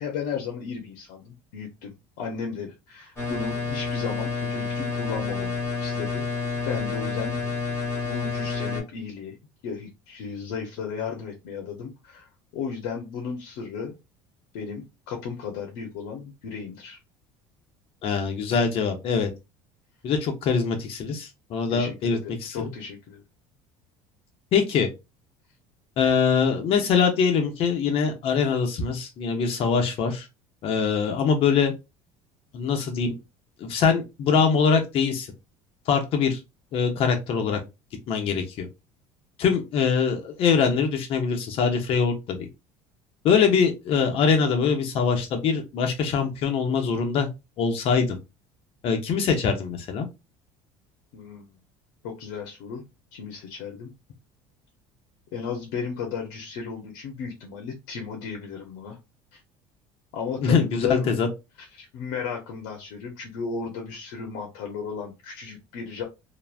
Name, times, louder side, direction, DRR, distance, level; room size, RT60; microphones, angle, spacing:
voice 1, 0.0-6.2 6.6-7.8 8.0-9.4 9.6-12.3 12.5-13.9 14.5-17.0 21.7-23.2 51.1-51.5 52.0-52.8 53.1-53.9 55.3-59.0 59.3-59.4 60.1-61.1 61.7-66.0, left 6 dB, 80° left, 2 dB, 0.7 m, -34 dB
sound 1, 3.2-8.8, left 4 dB, 20° left, 1.4 m, -29 dB
voice 2, 18.0-19.3 20.0-22.6 24.5-24.9 26.0-30.3 30.6-31.7 32.5-33.2 33.6-35.3 35.9-36.4 36.7-37.6 38.1-38.7 39.4-42.5 43.2-47.3 47.6-48.2 48.8-50.1 60.4-61.3, left 6 dB, 50° left, 4 dB, 0.8 m, -23 dB
3.0 x 2.2 x 2.4 m, 0.25 s
cardioid pair, 120°, 12 cm